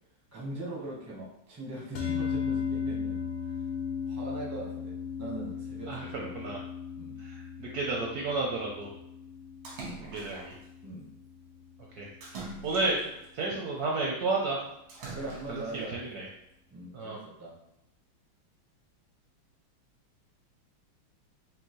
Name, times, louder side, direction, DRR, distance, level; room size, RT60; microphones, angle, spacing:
voice 1, 0.3-3.6 4.0-6.6 7.0-7.2 9.8-10.1 10.8-11.1 15.1-16.0 16.7-17.6, right 2 dB, 25° right, -4 dB, 0.3 m, -41 dB
sound 1, 2.0-12.4, left 7 dB, 85° left, 1.6 m, -37 dB
voice 2, 5.9-6.6 7.2-8.9 10.1-10.5 12.0-12.1 12.6-13.0 13.3-14.6 15.5-15.6 15.9-16.3 16.9-17.2, right 3 dB, 70° right, -2 dB, 0.9 m, -31 dB
Splash splatter, 9.6-10.6 12.2-13.3 14.9-15.7, right 3 dB, 90° right, 1.9 m, -43 dB
5.3 x 2.7 x 3.0 m, 0.85 s
omnidirectional pair, 2.2 m